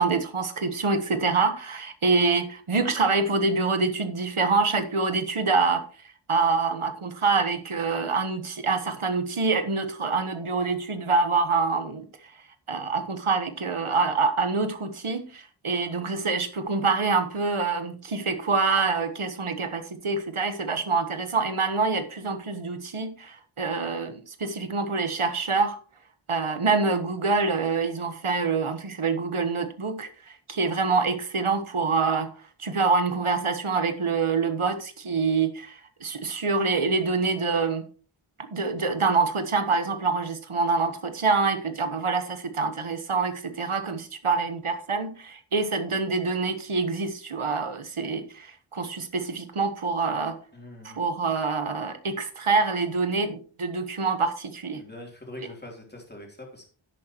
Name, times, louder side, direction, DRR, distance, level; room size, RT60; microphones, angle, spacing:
voice 1, 0.0-5.8 6.3-12.1 12.7-25.8 26.3-32.3 32.6-37.8 38.5-50.4 50.8-54.8, right 4 dB, 85° right, 1.3 m, -26 dB
voice 2, 50.5-51.0 54.8-56.7, left 1 dB, 20° left, 3.4 m, -43 dB
10.5 x 8.9 x 3.0 m
wide cardioid pair, 45°, 49 cm